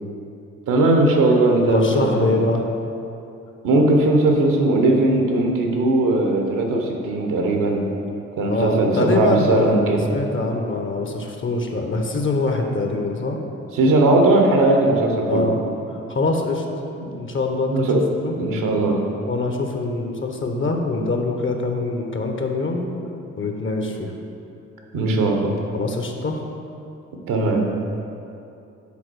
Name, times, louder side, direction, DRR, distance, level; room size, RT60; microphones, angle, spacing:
voice 1, 0.7-2.3 3.6-7.9 8.4-10.1 13.7-15.5 17.0-17.1 17.7-18.0 18.4-19.0 24.9-25.6 27.3-27.6, right 2 dB, 65° right, 2 dB, 1.0 m, -18 dB
voice 2, 1.7-2.7 8.4-13.4 15.3-15.6 16.1-16.6 17.1-17.8 18.1-18.3 19.3-22.9 23.4-24.1 25.7-26.4, left 3 dB, 35° left, 3 dB, 0.9 m, -24 dB
7.2 x 3.9 x 4.6 m, 2.7 s
hypercardioid pair, 40°, 35 cm